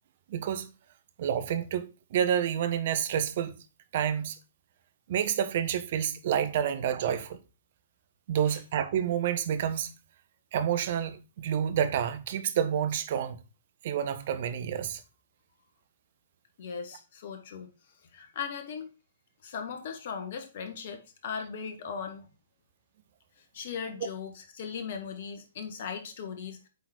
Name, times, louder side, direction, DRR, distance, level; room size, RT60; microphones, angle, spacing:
voice 1, 0.3-0.7 1.2-3.5 3.9-4.4 5.1-7.4 8.3-9.9 10.5-13.4 13.8-15.0, right 9 dB, 50° right, 0.9 m, -29 dB
voice 2, 16.6-17.7 18.0-18.9 19.4-22.3 23.4-26.7, left 6 dB, 50° left, 1.6 m, -38 dB
8.3 x 4.0 x 4.4 m
figure-of-eight pair, 120°, 0 cm